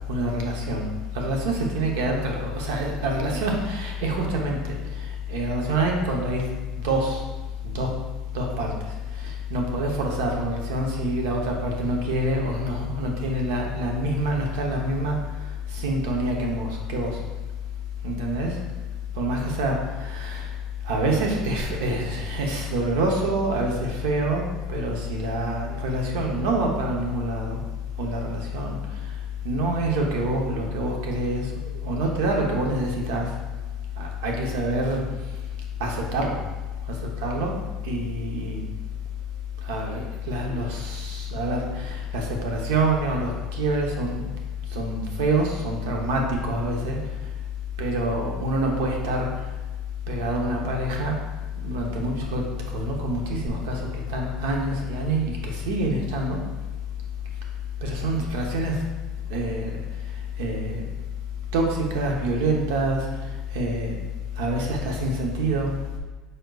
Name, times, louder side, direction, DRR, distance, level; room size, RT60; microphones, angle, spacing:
voice 1, 0.1-6.4 6.7-7.2 7.6-7.9 8.3-8.7 9.2-15.2 15.7-17.2 18.0-18.6 19.2-20.5 20.8-27.6 28.0-28.8 29.4-31.5 31.8-33.3 34.0-35.0 35.8-36.4 36.9-37.5 37.8-38.6 39.6-44.3 44.7-47.0 47.8-49.3 50.1-51.2 51.6-56.4 57.8-58.8 59.3-59.8 60.4-60.8 61.5-63.1 63.5-64.0 64.4-66.0, right 1 dB, 90° right, 0 dB, 0.8 m, -26 dB
5.0 x 4.3 x 2.3 m, 1.2 s
cardioid pair, 145°, 0 cm